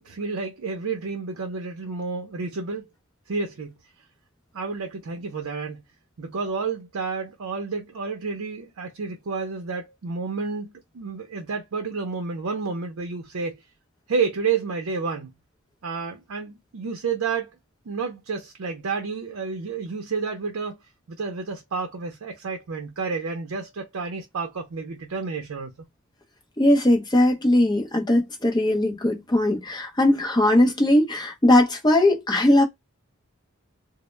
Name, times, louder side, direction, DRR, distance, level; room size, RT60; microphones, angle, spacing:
voice 1, 0.0-2.9 3.3-3.8 4.5-5.8 6.2-13.6 14.1-15.3 15.8-17.5 17.9-20.8 21.1-25.9, right 5 dB, 75° right, 0.5 m, -30 dB
voice 2, 26.6-32.6, left 1 dB, 20° left, 0.6 m, -19 dB
2.1 x 2.0 x 3.0 m
head